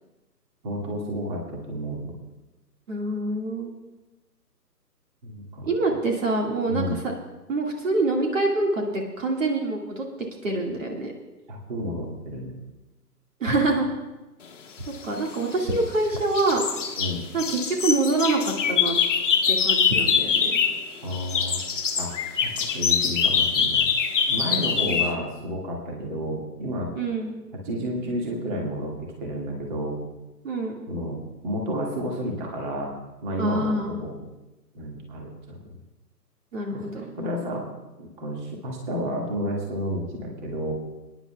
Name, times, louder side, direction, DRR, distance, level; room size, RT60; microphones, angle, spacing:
voice 1, 0.6-2.1 5.2-5.7 6.7-7.0 11.5-12.6 17.0-17.2 21.0-21.6 22.0-23.9 24.3-26.9 27.6-30.0 30.9-32.9 33.2-34.2 34.7-35.6 36.7-37.6 38.0-40.7, equal, 30° right, -1 dB, 2.0 m, -31 dB
voice 2, 2.9-3.8 5.6-6.9 7.5-10.0 10.4-11.1 13.4-13.9 15.0-16.6 17.3-19.0 19.5-20.6 24.8-25.1 27.0-27.4 30.4-30.7 33.4-34.0 36.5-37.0, right 2 dB, 50° right, 1 dB, 2.0 m, -25 dB
sound 1, 15.2-16.0 16.3-20.9 21.1-25.1, left 6 dB, 45° left, 1.2 m, -24 dB
27.0 x 10.0 x 2.3 m, 1.1 s
figure-of-eight pair, 145°, 49 cm